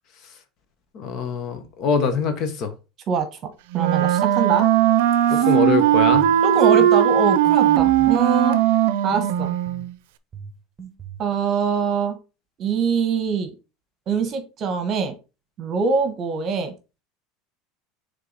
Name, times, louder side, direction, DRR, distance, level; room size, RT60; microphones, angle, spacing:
voice 1, 0.9-2.7 5.3-6.3, left 5 dB, 40° left, 1.2 m, -23 dB
voice 2, 3.1-4.7 5.3-5.4 6.4-8.6 9.0-9.5 11.2-12.2 12.6-13.5 14.1-15.1 15.6-16.7, right 6 dB, 35° right, 1.2 m, -23 dB
Wind instrument woodwind instrument, 3.7-9.9, right 11 dB, 75° right, 0.6 m, -18 dB
sound 1, 6.1-6.4 6.8-7.0 7.5-8.2 9.1-9.9 10.3-11.3, right 4 dB, 15° right, 1.5 m, -37 dB
6.6 x 3.7 x 4.0 m
supercardioid pair, 155°, 0 cm